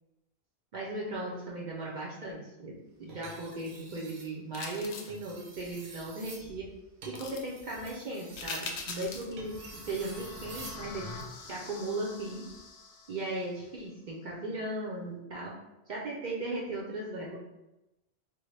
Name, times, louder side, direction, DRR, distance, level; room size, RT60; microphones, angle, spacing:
voice 1, 0.7-2.7 3.0-6.7 7.1-11.1 11.5-12.4 13.1-15.5 15.9-17.4, right 2 dB, 55° right, -4 dB, 0.6 m, -37 dB
Knife Sharpening Sound, 3.1-4.3 5.0-10.9 12.3-12.6, right 3 dB, 80° right, 0.9 m, -49 dB
sound 1, 4.5-5.2 7.1-7.4 8.4-9.3 9.7-9.8, left 4 dB, 90° left, 0.8 m, -40 dB
sound 2, 8.7-13.7, left 3 dB, 55° left, 0.5 m, -47 dB
3.7 x 2.0 x 3.2 m, 0.97 s
omnidirectional pair, 1.1 m